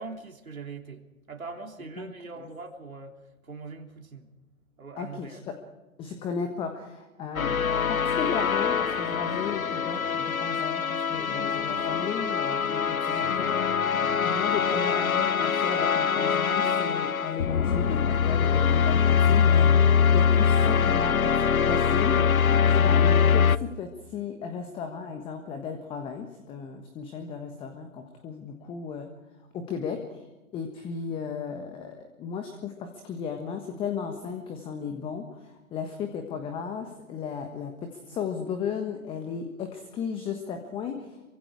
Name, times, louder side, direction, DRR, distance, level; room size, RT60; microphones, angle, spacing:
voice 1, 0.0-4.3 4.8-5.4 14.1-14.2, right 4 dB, 75° right, 3 dB, 3.2 m, -42 dB
voice 2, 5.0-5.4 6.0-7.6 7.9-13.9 14.2-21.4 21.6-29.1 29.5-30.3 30.5-41.2, left 6 dB, 10° left, 7 dB, 1.3 m, -35 dB
sound 1, 7.4-23.6, left 6 dB, 75° left, 0.9 m, -23 dB
27.5 x 24.0 x 4.9 m, 1.1 s
figure-of-eight pair, 130°, 42 cm